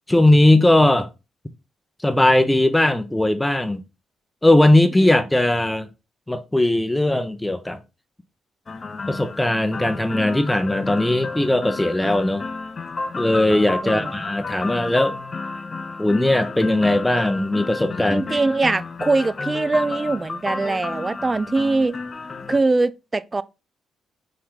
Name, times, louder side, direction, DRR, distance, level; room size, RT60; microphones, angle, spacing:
voice 1, 0.1-1.1 2.0-3.8 4.4-5.9 6.3-7.8 9.1-12.4 13.2-15.2 16.0-18.4, left 1 dB, 10° left, 0.8 m, -18 dB
sound 1, 8.7-22.6, left 3 dB, 40° left, 0.7 m, -32 dB
voice 2, 13.8-14.2 18.1-22.0 22.5-23.4, right 3 dB, 30° right, 0.4 m, -22 dB
4.3 x 3.3 x 3.6 m
hypercardioid pair, 45°, 0 cm